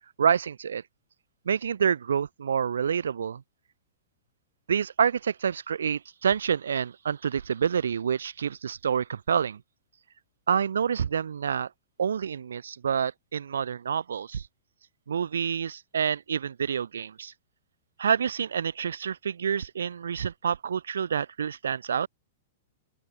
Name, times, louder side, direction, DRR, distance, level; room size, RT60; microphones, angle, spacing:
voice 1, 0.2-0.8 1.4-3.4 4.7-9.6 10.5-11.7 12.0-14.4 15.1-17.3 18.0-22.1, right 7 dB, 80° right, 4.6 m, -27 dB
open air
hypercardioid pair, 115°, 0 cm